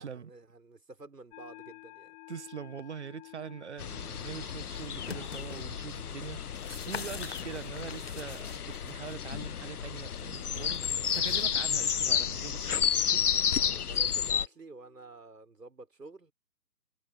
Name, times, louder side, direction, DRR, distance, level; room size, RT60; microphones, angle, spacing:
voice 1, 0.0-2.2 13.8-16.3, right 3 dB, 70° right, 5.2 m, -50 dB
sound 1, 1.3-15.2, left 31 dB, 15° left, 2.7 m, -56 dB
voice 2, 2.3-13.3, right 7 dB, 45° right, 1.4 m, -43 dB
sound 2, 3.8-14.5, left 8 dB, 65° left, 0.6 m, -31 dB
sound 3, 4.7-5.6 6.2-9.2 10.5-12.3 13.6-13.7, left 6 dB, 40° left, 0.9 m, -45 dB
figure-of-eight pair, 140°, 49 cm